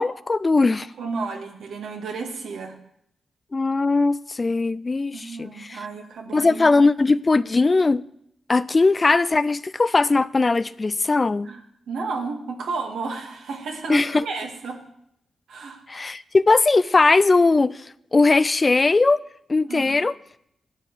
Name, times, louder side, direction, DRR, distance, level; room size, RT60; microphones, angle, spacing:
voice 1, 0.0-0.9 3.5-5.8 6.3-8.0 8.5-11.5 13.9-14.2 15.9-17.7 18.1-19.2 19.5-20.1, left 3 dB, 35° left, 0.4 m, -19 dB
voice 2, 0.8-2.8 5.1-6.8 11.4-14.8 15.5-15.8 19.7-20.0, right 4 dB, 80° right, 2.3 m, -32 dB
11.5 x 8.9 x 8.3 m
supercardioid pair, 50°, 0 cm